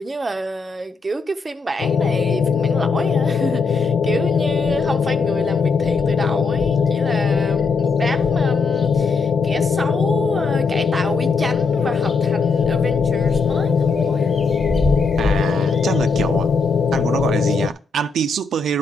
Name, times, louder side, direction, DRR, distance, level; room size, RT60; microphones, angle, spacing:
voice 1, 0.0-14.4, right 3 dB, 25° right, 0.8 m, -29 dB
sound 1, 1.8-17.7, left 6 dB, 75° left, 0.5 m, -19 dB
sound 2, 4.5-5.1 5.5-5.6 5.8-9.8 10.3-11.2 11.5-17.3, left 1 dB, 20° left, 1.3 m, -31 dB
voice 2, 15.2-16.5 16.9-18.8, right 8 dB, 85° right, 0.5 m, -25 dB
11.5 x 3.8 x 7.5 m
wide cardioid pair, 140°, 0 cm